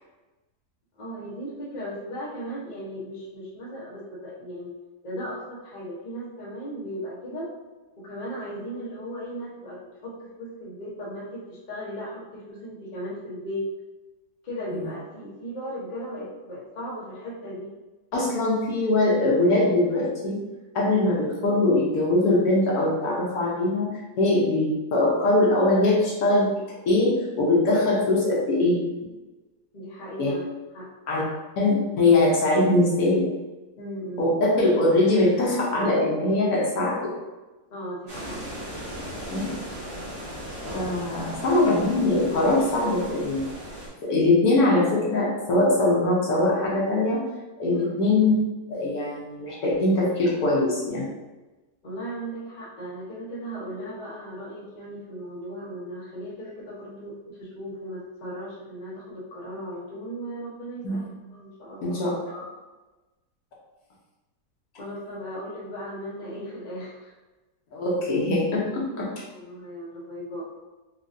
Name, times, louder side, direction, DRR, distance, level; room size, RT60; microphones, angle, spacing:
voice 1, 1.0-4.7 5.0-7.5 8.0-13.7 14.4-17.7 24.1-24.3 29.7-30.4 30.7-30.9 33.8-34.3 37.7-38.4 47.7-47.9 51.8-62.5 64.8-67.1 69.3-70.5, equal, 40° left, -5 dB, 0.7 m, -37 dB
voice 2, 18.1-20.4 20.7-23.9 24.2-26.5 26.9-28.8 30.2-30.3 31.1-31.2 31.6-33.2 34.2-37.1 39.3-39.5 40.7-43.5 44.0-47.3 47.6-48.3 48.7-51.0 60.8-61.0 61.8-62.1 67.7-69.1, left 2 dB, 65° left, -4 dB, 1.2 m, -22 dB
sound 1, 38.1-43.9, equal, 40° right, 1.5 m, -37 dB
4.6 x 2.4 x 2.5 m, 1.2 s
omnidirectional pair, 1.8 m